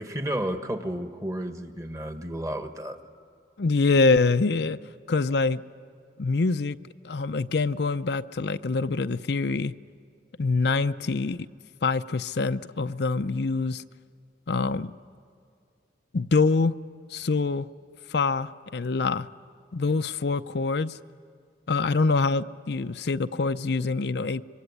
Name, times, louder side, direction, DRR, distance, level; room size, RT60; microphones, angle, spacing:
voice 1, 0.0-3.0, right 1 dB, 20° right, 1.4 m, -32 dB
voice 2, 3.6-4.8 5.1-5.6 6.2-6.8 7.0-9.7 10.4-11.5 11.8-13.8 14.5-14.9 16.1-16.8 17.1-17.7 18.1-19.3 19.7-21.0 21.7-24.4, left 3 dB, 65° left, 0.6 m, -25 dB
25.5 x 24.0 x 9.7 m
head